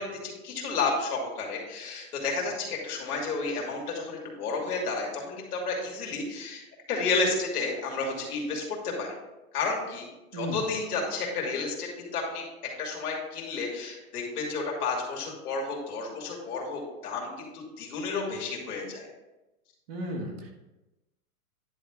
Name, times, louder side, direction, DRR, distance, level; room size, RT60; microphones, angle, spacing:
voice 1, 0.0-9.1 9.5-10.1 10.3-12.4 12.8-19.1, left 4 dB, 75° left, -1 dB, 2.7 m, -31 dB
voice 2, 19.9-20.5, equal, 40° right, 1 dB, 1.6 m, -34 dB
10.5 x 3.5 x 4.9 m, 1.0 s
hypercardioid pair, 160°, 46 cm